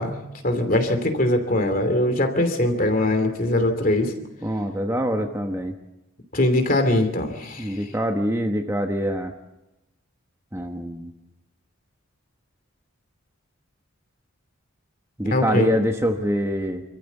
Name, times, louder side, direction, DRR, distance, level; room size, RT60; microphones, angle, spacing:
voice 1, 0.0-4.1 6.3-7.8 15.2-15.7, left 1 dB, 40° left, 7 dB, 2.8 m, -22 dB
voice 2, 4.4-5.8 7.6-9.3 10.5-11.1 15.2-16.8, equal, 10° right, 4 dB, 1.1 m, -25 dB
26.5 x 14.5 x 8.2 m, 0.95 s
head